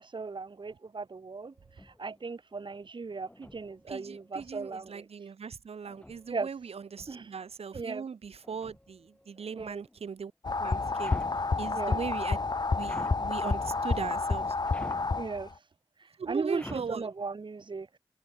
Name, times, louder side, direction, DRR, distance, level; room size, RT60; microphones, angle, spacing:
voice 1, 0.0-5.0 6.3-6.5 7.1-7.3 7.7-8.0 9.5-9.8 11.7-12.0 15.2-15.7 16.0-18.0, right 4 dB, 50° right, 1.7 m, -37 dB
Robot Walking Demo, 1.3-2.3 3.2-4.9 5.8-7.5 8.4-10.1 11.0-11.5 12.8-13.4 14.7-15.2 16.5-17.1, left 1 dB, 10° left, 3.8 m, -49 dB
voice 2, 3.9-10.3 10.6-11.2 11.6-12.4 12.8-14.6 16.2-17.1, right 6 dB, 80° right, 4.8 m, -39 dB
sound 1, 10.4-15.5, left 3 dB, 45° left, 1.3 m, -30 dB
cardioid pair, 45°, 10 cm